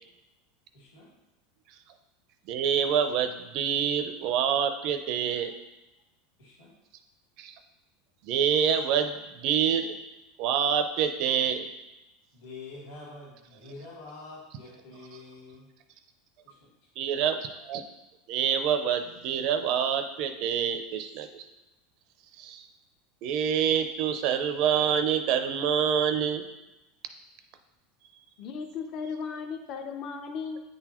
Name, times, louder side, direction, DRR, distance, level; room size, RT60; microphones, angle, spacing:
voice 1, 0.7-1.1 6.4-6.7 12.3-15.7 16.4-16.7, left 3 dB, 80° left, -5 dB, 2.0 m, -46 dB
voice 2, 2.5-5.5 7.4-7.5 8.2-9.9 10.4-11.7 17.0-17.8 18.3-21.5 22.4-22.7 23.2-26.4, right 8 dB, 45° right, 8 dB, 0.5 m, -26 dB
voice 3, 28.4-30.6, left 5 dB, 35° left, 6 dB, 0.6 m, -36 dB
9.0 x 3.9 x 3.0 m, 1.0 s
supercardioid pair, 165°, 0 cm